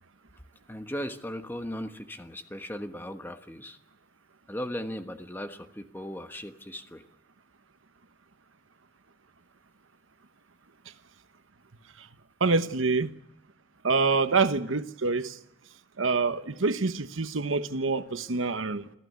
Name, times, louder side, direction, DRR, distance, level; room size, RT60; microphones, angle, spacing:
voice 1, 0.7-3.8 4.5-7.0, equal, 10° left, 1.3 m, -37 dB
voice 2, 12.4-13.1 13.8-15.4 16.0-18.8, right 4 dB, 85° right, 1.1 m, -26 dB
27.0 x 15.5 x 9.5 m
head